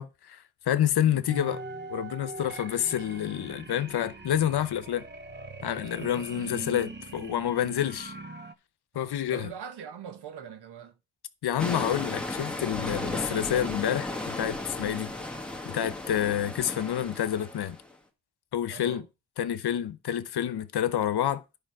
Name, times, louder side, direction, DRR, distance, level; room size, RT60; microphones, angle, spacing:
voice 1, 0.0-1.6 1.9-5.1 5.6-8.1 8.9-9.5 11.4-15.1 15.6-17.8 18.5-19.0 19.4-21.4, left 10 dB, 70° left, 0.9 m, -28 dB
sound 1, 1.3-8.5, right 3 dB, 25° right, 1.1 m, -42 dB
voice 2, 5.8-6.5 9.3-10.9 18.7-19.1, right 8 dB, 75° right, 1.3 m, -42 dB
sound 2, 11.6-17.9, left 2 dB, 5° left, 1.6 m, -35 dB
10.0 x 5.3 x 4.8 m
cardioid pair, 100°, 40 cm